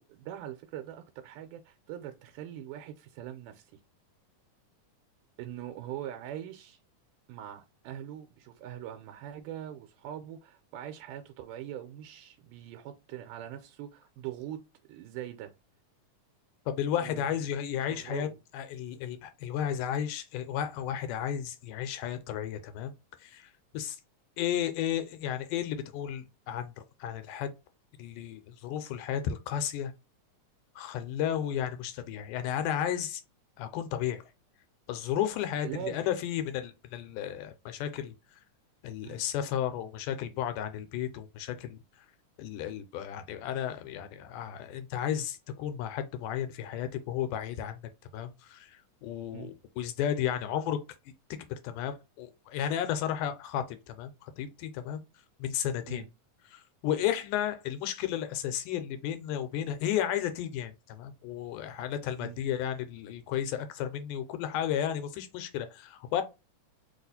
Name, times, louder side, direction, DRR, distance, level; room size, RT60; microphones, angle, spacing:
voice 1, 0.0-3.7 5.4-6.8 7.3-14.6 14.9-15.5 17.0-17.4 17.9-18.4 35.6-36.1 39.0-39.2 49.3-49.5 55.9-56.1 62.2-62.4, right 11 dB, 90° right, 2.2 m, -42 dB
voice 2, 16.7-18.3 18.5-22.9 23.2-23.5 23.7-24.0 24.4-26.7 27.0-27.5 28.0-29.9 30.8-33.2 33.6-34.2 34.9-38.1 38.8-41.8 42.4-47.8 48.1-48.7 49.0-50.8 51.6-55.0 55.4-56.0 56.5-66.2, left 10 dB, 90° left, 2.2 m, -33 dB
4.9 x 2.4 x 4.0 m
omnidirectional pair, 3.7 m